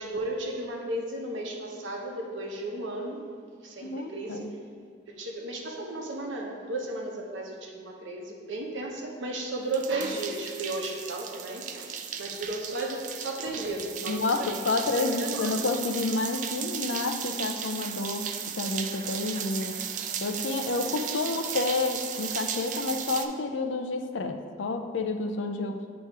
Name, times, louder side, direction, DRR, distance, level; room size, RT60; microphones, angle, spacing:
voice 1, 0.0-3.2 3.6-4.5 5.1-14.6 14.9-15.6 20.7-20.8, right 2 dB, 85° right, 0 dB, 1.0 m, -34 dB
voice 2, 3.8-4.5 14.1-19.8 20.2-25.8, left 3 dB, 85° left, 6 dB, 0.5 m, -30 dB
sound 1, 9.7-23.2, right 8 dB, 40° right, 0.3 m, -35 dB
8.7 x 3.1 x 4.6 m, 2.1 s
head